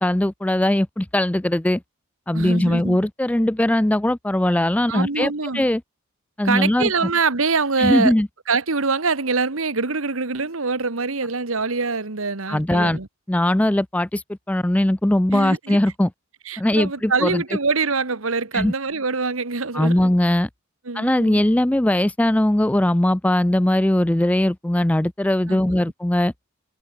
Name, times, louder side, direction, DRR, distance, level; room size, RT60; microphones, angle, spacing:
voice 1, 0.0-1.8 2.3-5.8 6.4-7.1 7.8-8.3 12.5-13.0 13.3-16.1 16.6-17.4 18.5-18.7 19.7-20.5 20.9-26.3, left 1 dB, 5° left, 0.4 m, -20 dB
voice 2, 2.3-3.0 4.9-5.6 6.4-8.1 8.5-13.1 15.3-15.8 16.5-20.1 20.8-21.4 25.5-25.8, right 4 dB, 75° right, 1.6 m, -24 dB
head